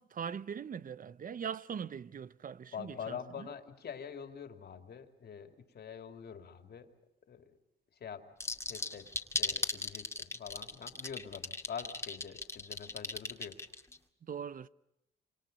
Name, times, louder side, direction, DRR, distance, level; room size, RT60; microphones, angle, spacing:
voice 1, 0.0-3.5 14.2-14.7, right 7 dB, 45° right, 0.9 m, -41 dB
voice 2, 2.7-6.9 7.3-7.6 8.0-8.3 8.7-9.1 9.4-13.6, left 7 dB, 55° left, 2.8 m, -45 dB
sound 1, 8.4-14.0, left 2 dB, 15° left, 2.3 m, -36 dB
27.5 x 27.0 x 5.4 m
cardioid pair, 90°, 20 cm